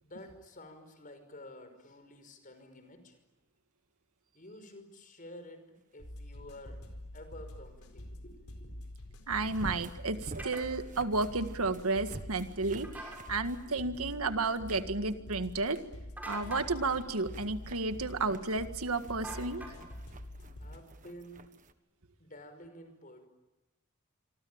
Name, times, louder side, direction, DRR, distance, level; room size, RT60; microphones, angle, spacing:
voice 1, 0.0-3.2 4.3-6.8 7.1-8.7 9.1-9.2 14.7-14.8 19.2-19.5 20.6-21.5 22.2-23.3, left 1 dB, 40° left, 9 dB, 5.6 m, -51 dB
sound 1, 3.0-3.1 9.4-14.2 14.5-14.9 15.3-15.8 16.3-21.7, right 2 dB, 35° right, 1.5 m, -50 dB
sound 2, 6.0-20.8, left 1 dB, 75° left, 4.6 m, -47 dB
voice 2, 9.3-15.8 16.3-19.6, right 3 dB, 85° right, 9 dB, 1.9 m, -32 dB
sound 3, 10.4-10.6 12.8-13.2 16.2-16.7 19.2-20.0, right 1 dB, 10° right, 6.3 m, -44 dB
27.0 x 24.5 x 8.9 m, 1.0 s
head